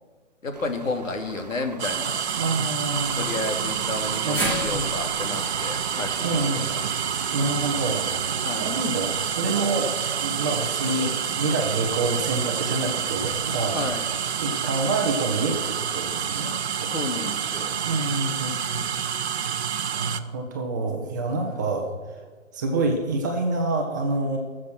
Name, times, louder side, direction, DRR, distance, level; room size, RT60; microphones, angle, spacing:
voice 1, 0.4-2.2 3.2-6.8 8.4-8.7 13.7-14.0 16.8-17.8 21.3-21.6, left 2 dB, 80° left, 5 dB, 2.4 m, -32 dB
sound 1, 0.5-18.2, right 4 dB, 35° right, 0.4 m, -40 dB
sound 2, 1.8-20.2, right 8 dB, 55° right, 0.8 m, -28 dB
voice 2, 2.4-3.3 4.2-4.9 6.2-6.7 7.3-9.9 10.2-13.8 14.4-16.6 16.8-16.9 17.8-18.9 19.9-21.9 22.5-24.4, right 2 dB, 15° right, 1 dB, 0.8 m, -27 dB
sound 3, 4.3-8.6 8.9-9.0 10.2-10.3, right 1 dB, 5° left, 1.9 m, -35 dB
18.0 x 7.4 x 6.3 m, 1.4 s
hypercardioid pair, 160°, 39 cm